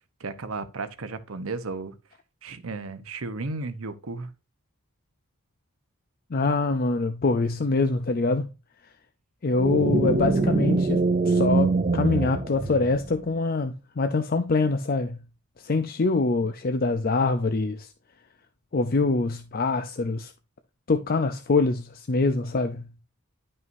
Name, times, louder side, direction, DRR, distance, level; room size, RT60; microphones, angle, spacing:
voice 1, 0.2-1.9 2.4-4.3, right 3 dB, 75° right, 0.9 m, -34 dB
voice 2, 6.3-8.5 9.4-15.2 15.6-17.9 18.7-20.3 20.9-22.9, left 3 dB, 45° left, 0.5 m, -24 dB
sound 1, 9.6-13.2, right 3 dB, 35° right, 0.6 m, -24 dB
11.0 x 5.5 x 2.6 m
head